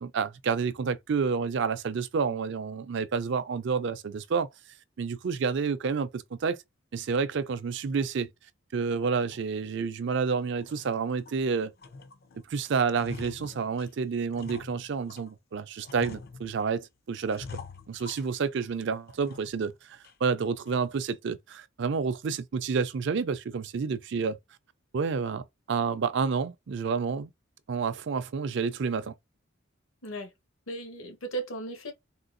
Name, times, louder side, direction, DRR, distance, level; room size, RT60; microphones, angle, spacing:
voice 1, 0.0-4.5 5.0-6.6 6.9-8.3 8.7-11.7 12.5-17.6 17.9-24.4 24.9-27.3 27.7-29.1, right 5 dB, 60° right, 0.4 m, -29 dB
sound 1, 9.3-9.5 9.9-10.1 10.5-11.4 11.8-12.4 12.7-15.3 15.8-16.8 17.3-18.7 19.1-19.7 20.0-20.1 20.7-21.0, left 4 dB, 50° left, 0.4 m, -46 dB
voice 2, 30.7-31.9, right 2 dB, 85° left, 1.2 m, -36 dB
3.7 x 2.2 x 2.5 m
head